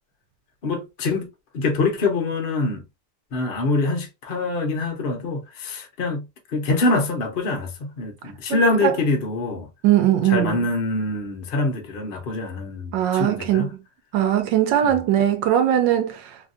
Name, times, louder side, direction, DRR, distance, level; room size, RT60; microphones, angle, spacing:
voice 1, 0.6-1.3 1.5-2.8 3.3-9.7 10.3-13.7 14.8-15.0, left 3 dB, 45° left, 0.8 m, -25 dB
voice 2, 8.5-8.9 9.8-10.6 12.9-13.7 14.1-16.4, right 11 dB, 80° right, 1.3 m, -20 dB
3.2 x 2.5 x 2.5 m
omnidirectional pair, 1.9 m